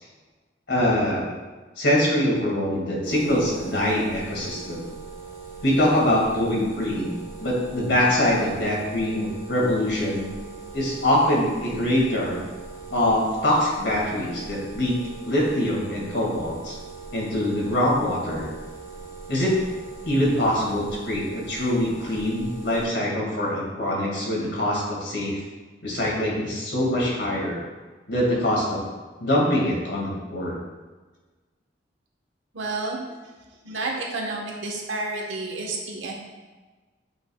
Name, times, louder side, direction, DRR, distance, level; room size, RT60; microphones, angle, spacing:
voice 1, 0.7-1.3 1.8-4.9 5.6-10.3 10.7-12.4 12.9-14.9 15.2-16.7 17.1-18.5 19.3-19.6 20.1-25.4 25.8-27.6 28.1-28.8 29.2-30.6, left 1 dB, 65° left, -4 dB, 2.1 m, -24 dB
sound 1, 3.0-22.8, right 4 dB, 15° left, 1.1 m, -41 dB
voice 2, 32.5-33.0 33.6-36.1, right 3 dB, 90° right, 0 dB, 1.2 m, -30 dB
8.7 x 5.4 x 2.3 m, 1.3 s
head